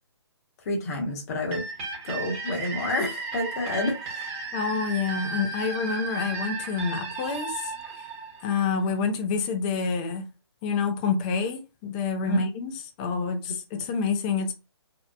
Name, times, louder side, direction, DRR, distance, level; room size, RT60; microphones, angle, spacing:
voice 1, 0.6-1.6 2.0-4.3 12.3-12.4, left 1 dB, 35° left, 0.8 m, -29 dB
sound 1, 1.5-9.1, right 4 dB, 30° right, 0.9 m, -35 dB
voice 2, 4.5-8.1 8.4-10.3 10.6-12.7 13.0-14.5, left 5 dB, 15° left, 0.3 m, -28 dB
2.8 x 2.0 x 2.2 m
hypercardioid pair, 150°, 14 cm